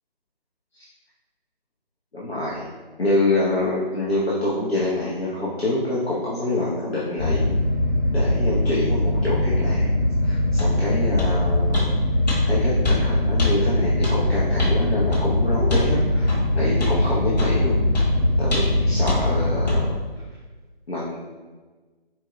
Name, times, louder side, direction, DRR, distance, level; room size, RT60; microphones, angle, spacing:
voice 1, 2.1-2.7 3.0-7.6 8.1-9.9 10.2-11.8 12.5-17.8 18.4-20.0 20.9-21.2, left 2 dB, 85° left, -6 dB, 1.1 m, -26 dB
sound 1, 7.2-19.8, left 1 dB, 65° left, 1.5 m, -21 dB
sound 2, 10.6-10.7 11.2-11.4 11.7-11.9 12.3-12.4 12.8-13.0 13.4-13.5 14.0-14.2 14.6-14.8 15.1-15.3 15.7-15.9 16.3-16.4 16.8-17.0 17.4-17.6 17.9-18.1 18.5-18.8 19.1-19.2 19.7-19.8, left 3 dB, 45° left, 1.2 m, -26 dB
4.6 x 2.3 x 4.0 m, 1.3 s
figure-of-eight pair, 155°, 30 cm